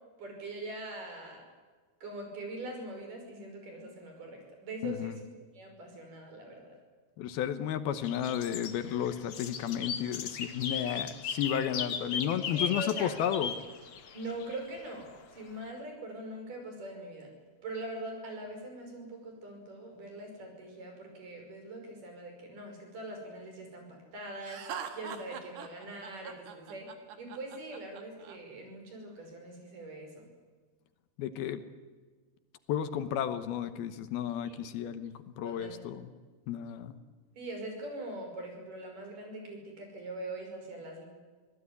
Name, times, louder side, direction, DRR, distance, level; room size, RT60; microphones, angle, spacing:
voice 1, 0.2-1.4 2.0-5.1 5.5-6.8 10.9-11.1 12.5-13.1 14.1-17.3 17.6-26.9 27.2-30.3 34.4-34.5 35.4-35.8 37.4-41.1, right 1 dB, 55° right, 3 dB, 7.1 m, -42 dB
voice 2, 4.8-5.2 7.2-13.5 31.2-31.6 32.7-36.1 36.5-37.0, left 9 dB, 75° left, 11 dB, 2.9 m, -33 dB
sound 1, 8.0-14.9, left 6 dB, 55° left, 1.6 m, -37 dB
Laughter, 24.4-28.4, right 8 dB, 80° right, 3.8 m, -42 dB
25.5 x 17.5 x 9.8 m, 1.4 s
omnidirectional pair, 4.6 m